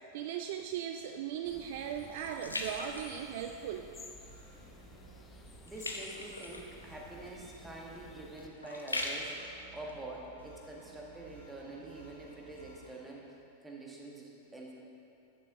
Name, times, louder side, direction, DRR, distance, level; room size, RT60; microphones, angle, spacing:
voice 1, 0.1-3.9, right 9 dB, 50° right, 6 dB, 0.3 m, -38 dB
sound 1, 0.6-3.9 4.3-4.7 5.0-10.9 11.4-11.5, left 1 dB, 80° left, 0.7 m, -42 dB
sound 2, 1.4-8.5, left 3 dB, 15° left, 0.7 m, -53 dB
sound 3, 3.9-12.9, right 4 dB, 90° right, 2.1 m, -58 dB
voice 2, 5.6-9.4 9.7-13.3 13.6-14.7, right 2 dB, 10° right, -2 dB, 1.5 m, -46 dB
11.5 x 6.3 x 3.8 m, 2.8 s
figure-of-eight pair, 90°, 0 cm